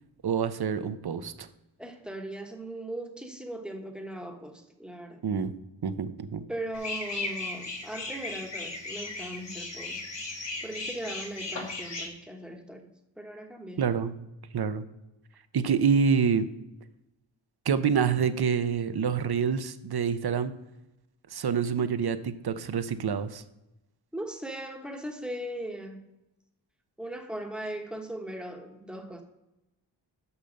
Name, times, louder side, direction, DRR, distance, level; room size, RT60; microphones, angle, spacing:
voice 1, 0.2-1.5 5.2-5.5 5.8-6.4 13.8-14.1 14.5-14.8 15.5-16.5 17.7-20.5 21.3-23.4, right 6 dB, 60° right, 12 dB, 0.7 m, -27 dB
voice 2, 1.8-5.2 6.5-13.9 24.1-26.0 27.0-29.2, right 1 dB, ahead, 3 dB, 1.2 m, -39 dB
sound 1, 6.7-12.1, left 3 dB, 70° left, 1.8 m, -36 dB
6.9 x 5.6 x 6.5 m, 0.96 s
wide cardioid pair, 95°, 44 cm